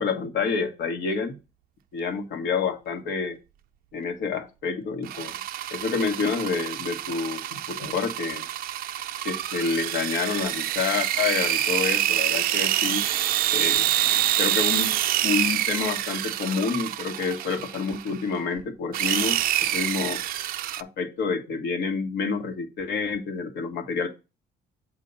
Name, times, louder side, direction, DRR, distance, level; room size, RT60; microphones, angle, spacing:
voice 1, 0.0-1.4 1.9-3.4 3.9-5.3 5.7-8.5 9.2-13.1 13.5-15.0 15.2-19.4 19.7-20.2 20.8-24.1, left 5 dB, 75° left, 5 dB, 1.6 m, -28 dB
sound 1, 5.0-18.2 18.9-20.8, right 13 dB, 60° right, 0.5 m, -26 dB
8.2 x 2.8 x 5.4 m, 0.27 s
cardioid pair, 110°, 17 cm